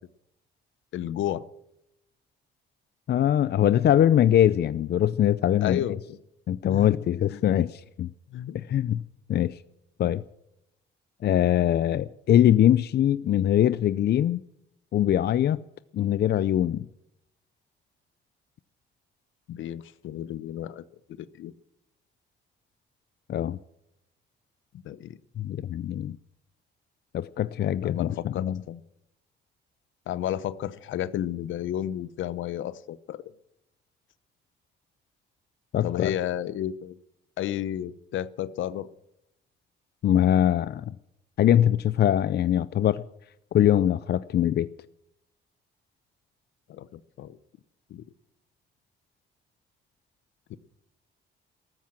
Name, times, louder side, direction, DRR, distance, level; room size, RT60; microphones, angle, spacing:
voice 1, 0.9-1.4 5.6-6.2 6.7-6.9 7.3-7.4 8.3-8.6 19.5-21.5 24.7-25.2 27.8-28.8 30.1-33.2 35.8-37.0 37.4-38.9 46.7-47.4 47.9-48.0 50.5-50.6, left 11 dB, 75° left, 0.9 m, -32 dB
voice 2, 3.1-5.8 6.5-8.1 8.5-9.0 9.3-9.6 10.0-10.2 11.2-14.4 14.9-15.6 15.9-16.9 23.3-23.6 25.4-26.2 27.1-28.6 35.7-36.1 40.0-40.9 41.4-43.0 43.5-44.7, left 11 dB, 55° left, 0.5 m, -22 dB
14.5 x 13.5 x 7.5 m
cardioid pair, 90°, 20 cm